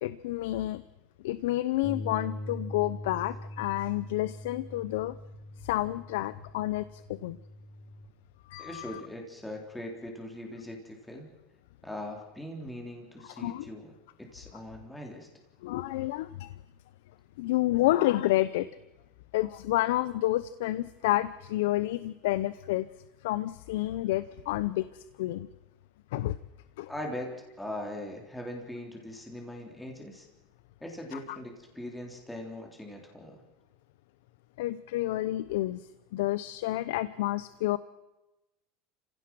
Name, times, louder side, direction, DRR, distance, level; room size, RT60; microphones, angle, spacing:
voice 1, 0.0-0.8 1.2-5.2 5.6-7.4 8.5-9.0 13.4-13.7 15.6-16.5 17.4-18.7 19.3-22.9 23.2-25.5 26.1-26.4 26.8-26.9 31.1-31.4 34.6-37.8, left 16 dB, 80° left, 15 dB, 0.6 m, -29 dB
Bass guitar, 1.8-8.1, left 1 dB, 35° left, 2.5 m, -42 dB
voice 2, 8.6-11.3 11.8-15.3 26.9-27.3 27.6-30.3 30.8-33.4, left 1 dB, 5° left, 0 dB, 3.6 m, -41 dB
28.0 x 16.5 x 6.2 m, 1.0 s
supercardioid pair, 130°, 0 cm